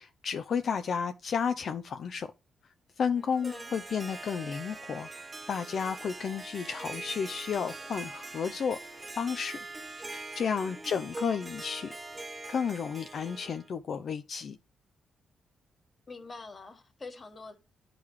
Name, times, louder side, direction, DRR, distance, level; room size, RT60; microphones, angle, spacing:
voice 1, 0.0-2.3 3.0-8.8 9.1-11.9 12.5-14.6, left 6 dB, 60° left, 0.4 m, -32 dB
Harp, 3.2-13.7, right 2 dB, 20° right, 0.8 m, -43 dB
voice 2, 10.7-11.1 16.1-17.6, left 3 dB, 35° left, 1.2 m, -45 dB
11.0 x 3.8 x 3.1 m
cardioid pair, 105°, 0 cm